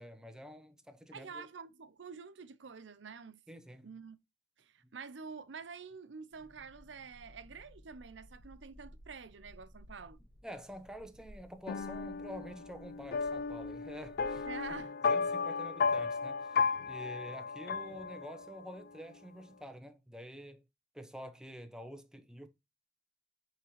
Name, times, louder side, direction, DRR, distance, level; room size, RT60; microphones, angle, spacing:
voice 1, 0.0-1.5 3.5-3.9 10.4-14.5 14.8-20.6 20.9-22.5, equal, 5° right, 0.8 m, -48 dB
voice 2, 1.1-3.4 3.8-4.2 4.6-10.2 14.4-14.9, right 5 dB, 75° right, 0.6 m, -48 dB
sound 1, 6.3-14.8, equal, 25° right, 1.6 m, -58 dB
sound 2, 11.7-18.6, left 5 dB, 55° left, 0.4 m, -34 dB
8.7 x 3.7 x 3.1 m
head